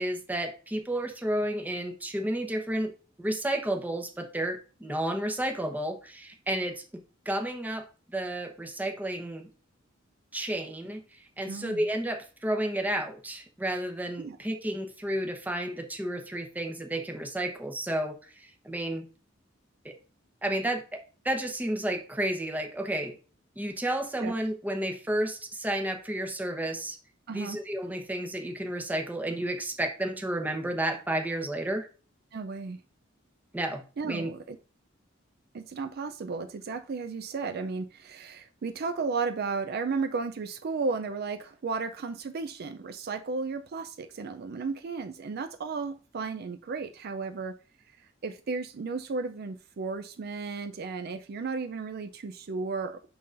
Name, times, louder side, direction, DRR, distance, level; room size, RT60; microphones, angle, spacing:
voice 1, 0.0-2.9 3.2-6.8 7.2-9.5 10.3-11.0 11.4-19.1 19.8-19.9 20.4-21.0 21.2-23.2 23.6-27.0 27.3-31.9 33.5-34.3, right 1 dB, 10° right, 4 dB, 0.9 m, -31 dB
voice 2, 11.5-11.9 14.2-14.4 24.2-24.3 27.3-27.6 32.3-32.8 34.0-34.6 35.5-47.5 48.0-53.1, right 4 dB, 50° right, 9 dB, 0.4 m, -34 dB
11.0 x 3.8 x 2.5 m, 0.36 s
head